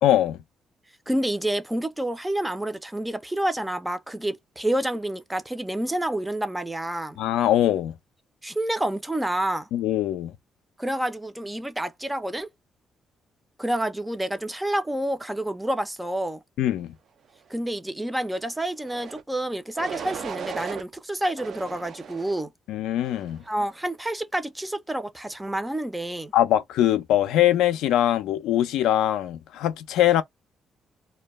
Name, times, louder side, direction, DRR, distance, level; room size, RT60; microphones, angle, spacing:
voice 1, 0.0-0.4 7.2-7.9 9.7-10.3 16.6-16.9 22.7-23.4 26.3-30.2, left 12 dB, 90° left, 0.4 m, -22 dB
voice 2, 1.1-7.2 8.4-9.7 10.8-12.5 13.6-16.4 17.5-22.5 23.5-26.3, right 1 dB, 10° right, 0.5 m, -28 dB
sound 1, 18.8-19.2 19.8-20.8 21.4-22.4 23.0-23.4, right 7 dB, 60° right, 0.5 m, -37 dB
2.2 x 2.1 x 3.0 m
cardioid pair, 90°, 0 cm